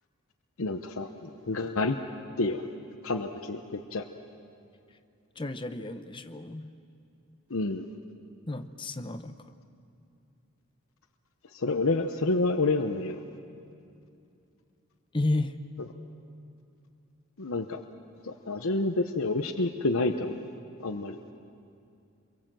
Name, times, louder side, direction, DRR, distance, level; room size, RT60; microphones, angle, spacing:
voice 1, 0.6-2.0 2.4-2.6 3.0-4.0 7.5-7.9 11.5-13.2 17.4-17.8 18.2-20.4 20.8-21.2, left 3 dB, 70° left, 6 dB, 0.9 m, -29 dB
voice 2, 5.4-6.7 8.5-9.5 15.1-15.6, left 2 dB, 25° left, 9 dB, 0.8 m, -32 dB
28.0 x 22.5 x 7.6 m, 2.6 s
head